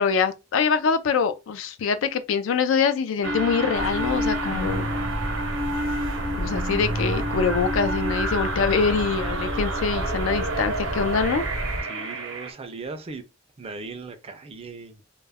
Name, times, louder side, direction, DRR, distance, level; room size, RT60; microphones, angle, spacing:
voice 1, 0.0-4.9 6.4-11.4, left 5 dB, 75° left, 0.4 m, -24 dB
sound 1, 3.2-12.5, right 1 dB, 80° right, 0.7 m, -29 dB
sound 2, 3.7-11.8, equal, 50° left, 0.7 m, -32 dB
voice 2, 11.9-13.2 13.6-15.0, right 3 dB, 30° right, 0.4 m, -38 dB
2.2 x 2.1 x 3.3 m
head